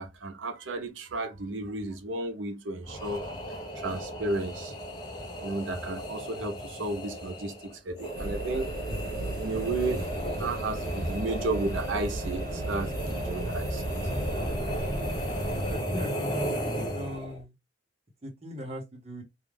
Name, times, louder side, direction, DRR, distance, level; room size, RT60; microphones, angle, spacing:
voice 1, 0.0-3.2 3.7-4.8 5.4-8.7 9.4-10.0 10.4-14.0, right 2 dB, 85° right, 0.6 m, -33 dB
sound 1, 2.8-17.4, equal, 20° left, 0.8 m, -34 dB
sound 2, 8.2-15.8, right 2 dB, 50° right, 0.4 m, -37 dB
voice 2, 15.7-16.4 16.7-17.5 18.2-19.2, equal, 35° right, 0.9 m, -39 dB
2.4 x 2.3 x 3.2 m
head